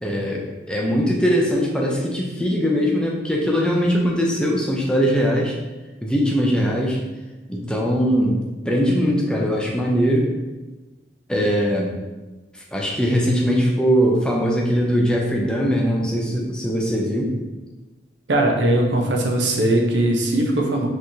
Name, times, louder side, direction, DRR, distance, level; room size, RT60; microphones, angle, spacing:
voice 1, 0.0-5.5 6.0-7.0 7.5-10.3 11.3-11.9 12.7-17.3, equal, 5° left, -2 dB, 0.5 m, -21 dB
voice 2, 18.3-20.9, right 1 dB, 90° right, 1 dB, 0.7 m, -19 dB
4.3 x 3.0 x 2.7 m, 1.1 s
head